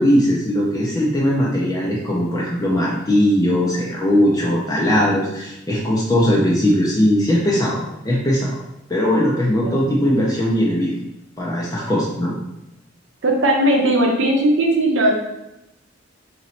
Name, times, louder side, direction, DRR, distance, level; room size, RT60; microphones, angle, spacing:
voice 1, 0.0-8.6 8.9-10.9 11.4-12.3, equal, 20° left, -5 dB, 0.5 m, -19 dB
voice 2, 9.6-10.2 13.2-15.1, right 1 dB, 75° right, 0 dB, 0.7 m, -18 dB
3.0 x 2.7 x 4.2 m, 0.89 s
head